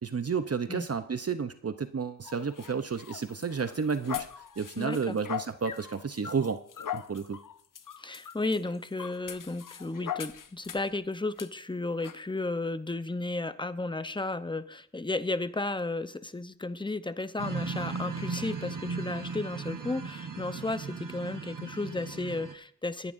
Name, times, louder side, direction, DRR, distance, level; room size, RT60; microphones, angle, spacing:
voice 1, 0.0-4.3 4.6-6.6 6.9-7.4, right 5 dB, 50° right, 10 dB, 0.7 m, -31 dB
sound 1, 2.2-11.0 11.4-11.5 12.0-12.2, left 9 dB, 90° left, 0.7 m, -41 dB
voice 2, 4.8-5.2 8.0-23.1, left 2 dB, 15° left, 12 dB, 0.8 m, -33 dB
sound 2, 17.4-22.5, right 5 dB, 80° right, 1.1 m, -37 dB
23.5 x 11.0 x 2.6 m, 0.63 s
wide cardioid pair, 70°, 31 cm